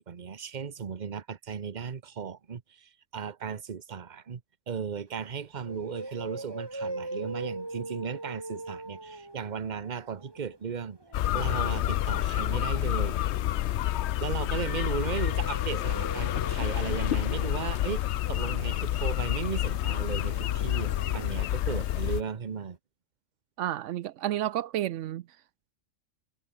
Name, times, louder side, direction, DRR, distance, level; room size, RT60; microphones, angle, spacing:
voice 1, 0.0-4.4 4.7-11.0 11.3-13.2 14.2-22.8, right 6 dB, 40° right, 1.1 m, -36 dB
sound 1, 5.1-5.2 5.6-11.5 13.6-21.7 21.9-22.0 22.4-22.5, right 2 dB, 20° right, 2.0 m, -42 dB
sound 2, 11.1-22.2, left 13 dB, 70° left, 0.8 m, -29 dB
voice 2, 23.6-25.2, right 12 dB, 80° right, 0.9 m, -31 dB
omnidirectional pair, 1.3 m